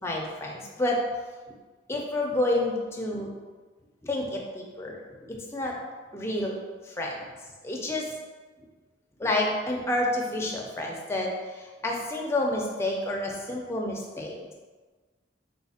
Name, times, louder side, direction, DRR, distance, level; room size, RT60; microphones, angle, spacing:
voice 1, 0.0-1.0 1.9-3.3 4.0-5.0 5.3-5.8 6.1-6.6 6.8-7.2 7.6-8.1 9.2-14.4, left 1 dB, 15° left, -1 dB, 0.5 m, -29 dB
4.0 x 2.4 x 4.1 m, 1.3 s
head